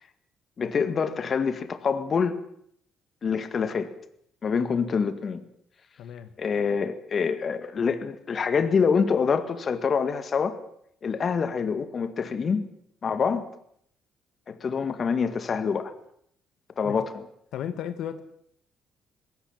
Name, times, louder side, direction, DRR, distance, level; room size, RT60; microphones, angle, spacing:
voice 1, 0.6-2.3 3.2-3.9 4.4-5.4 6.4-10.6 11.0-12.7 13.0-13.5 14.5-15.9 16.8-17.1, left 6 dB, 40° left, 1.9 m, -26 dB
voice 2, 6.0-6.3 16.8-17.0 17.5-18.2, left 9 dB, 70° left, 1.7 m, -34 dB
20.5 x 17.5 x 8.8 m
cardioid pair, 125°, 0 cm